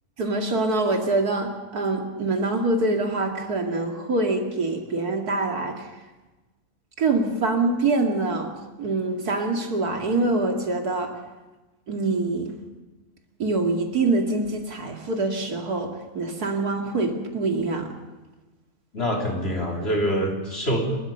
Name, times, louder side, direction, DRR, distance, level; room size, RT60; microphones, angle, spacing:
voice 1, 0.2-5.9 7.0-8.5 8.8-11.1 11.9-12.5 13.4-17.9, right 3 dB, 80° right, 3 dB, 2.8 m, -25 dB
voice 2, 18.9-21.0, equal, 40° left, 0 dB, 3.8 m, -25 dB
29.5 x 13.5 x 6.8 m, 1.2 s
omnidirectional pair, 1.6 m